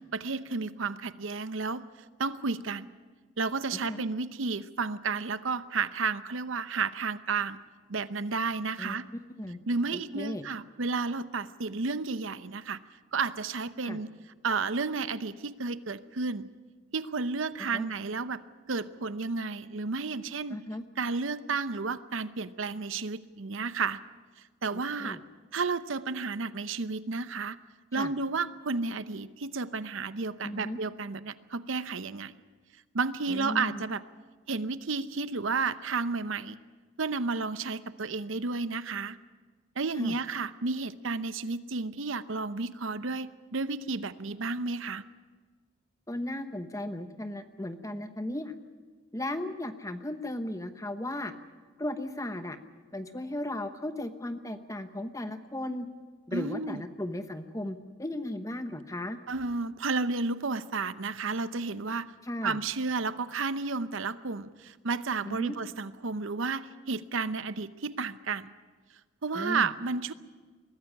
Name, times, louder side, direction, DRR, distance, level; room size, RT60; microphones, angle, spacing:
voice 1, 0.1-1.9 2.2-2.9 3.4-7.6 7.9-9.1 9.7-12.8 13.1-14.1 14.4-16.5 16.9-18.4 18.7-20.6 21.0-24.0 24.6-25.2 25.5-27.6 27.9-32.3 32.9-34.0 34.5-36.6 37.0-39.2 39.8-45.0 56.3-56.8 59.3-62.1 62.4-68.5 69.2-70.1, right 4 dB, 80° right, 14 dB, 0.8 m, -32 dB
voice 2, 3.7-4.0 8.8-9.6 9.9-10.5 13.8-14.0 17.7-17.9 20.5-20.8 24.7-25.2 27.9-28.1 30.4-30.8 33.3-33.8 40.0-40.2 46.1-48.5 49.1-51.3 51.8-52.6 52.9-55.9 56.3-59.2 62.2-62.6 65.3-65.6 69.3-69.7, left 1 dB, 15° left, 9 dB, 1.0 m, -36 dB
21.5 x 14.5 x 9.8 m, 1.4 s
head